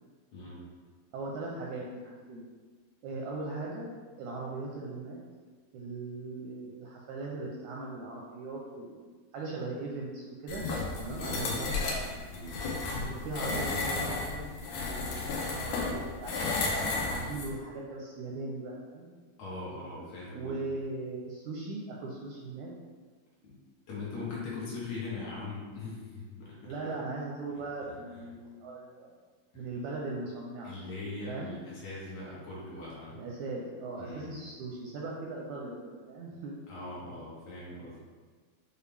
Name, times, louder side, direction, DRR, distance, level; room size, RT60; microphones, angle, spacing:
voice 1, 0.3-0.6 11.2-11.7 12.3-12.7 19.4-20.7 23.4-23.5 23.9-26.7 28.1-28.3 29.5-29.7 30.6-33.2 34.0-34.3 36.7-38.0, left 3 dB, 70° left, -7 dB, 2.4 m, -41 dB
voice 2, 1.1-2.5 3.0-5.2 5.7-10.6 11.0-11.9 13.0-19.1 20.3-22.7 26.7-29.1 29.6-30.7 31.3-31.5 33.1-36.6, right 3 dB, 80° right, -3 dB, 1.7 m, -39 dB
sound 1, 10.5-17.5, left 3 dB, 90° left, 2.4 m, -33 dB
6.7 x 2.4 x 3.3 m, 1.4 s
omnidirectional pair, 3.7 m